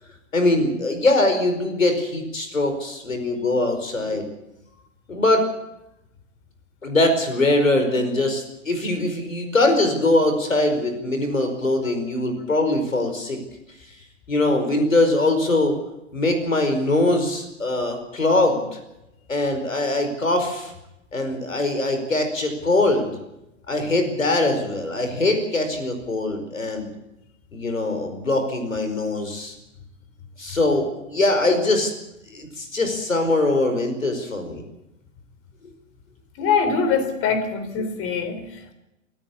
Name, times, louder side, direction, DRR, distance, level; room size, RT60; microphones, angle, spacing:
voice 1, 0.3-4.2 5.1-5.5 6.8-13.4 14.3-15.8 16.1-18.8 19.3-20.7 21.1-23.1 23.7-26.9 27.5-29.5 30.4-31.9 32.3-34.6, left 2 dB, 85° left, 5.0 m, -22 dB
voice 2, 36.4-38.7, left 5 dB, 35° left, 3.7 m, -23 dB
24.5 x 13.5 x 8.6 m
figure-of-eight pair, 100°, 39 cm